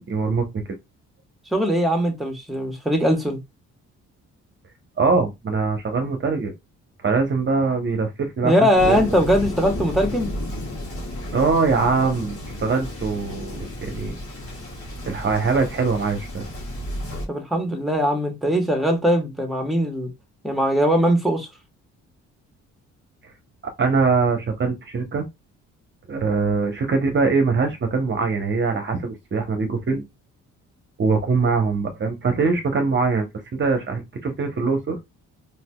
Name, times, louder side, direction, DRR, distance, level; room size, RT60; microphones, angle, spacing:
voice 1, 0.1-0.6 5.0-6.5 7.0-9.0 11.3-14.2 15.0-16.4 23.8-25.2 26.1-30.0 31.0-33.3 33.5-34.9, right 4 dB, 40° right, 0.8 m, -22 dB
voice 2, 1.5-3.4 8.4-10.3 17.3-20.1 20.4-21.5, equal, ahead, 1.2 m, -20 dB
Thunder, 8.7-17.3, left 1 dB, 50° left, 1.4 m, -32 dB
3.9 x 2.7 x 2.2 m
cardioid pair, 90°, 30 cm